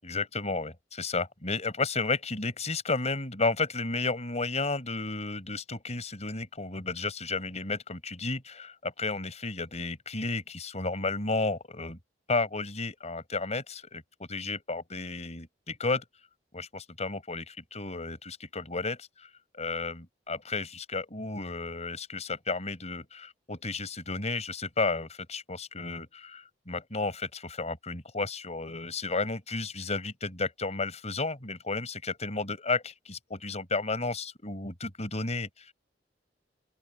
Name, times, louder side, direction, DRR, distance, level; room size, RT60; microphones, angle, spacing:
voice 1, 0.0-12.0 12.3-14.0 14.3-16.0 16.5-19.1 19.5-35.7, left 3 dB, 40° left, 5.0 m, -32 dB
open air
head